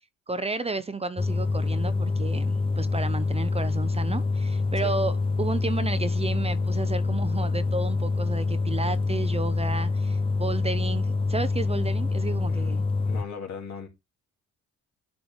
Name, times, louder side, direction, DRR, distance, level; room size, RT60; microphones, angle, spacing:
voice 1, 0.3-12.9, right 3 dB, 20° right, 0.6 m, -32 dB
sound 1, 1.2-13.2, left 3 dB, 20° left, 0.6 m, -26 dB
voice 2, 12.5-13.9, left 6 dB, 60° left, 2.5 m, -39 dB
10.5 x 4.5 x 3.5 m
cardioid pair, 90°, 30 cm